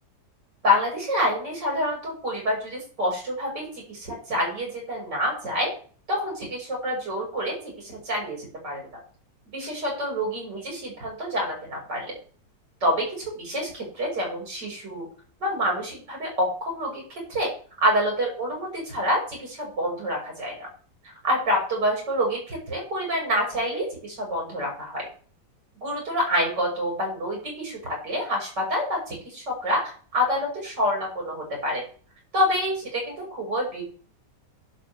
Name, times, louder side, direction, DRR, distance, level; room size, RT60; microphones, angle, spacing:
voice 1, 0.6-5.7 6.1-9.0 9.5-12.2 12.8-15.1 15.4-17.0 17.3-17.5 17.8-20.7 21.2-25.1 25.8-29.8 30.1-31.8 32.3-33.8, equal, 70° right, -1 dB, 5.8 m, -27 dB
12.5 x 11.0 x 3.3 m, 0.43 s
omnidirectional pair, 1.9 m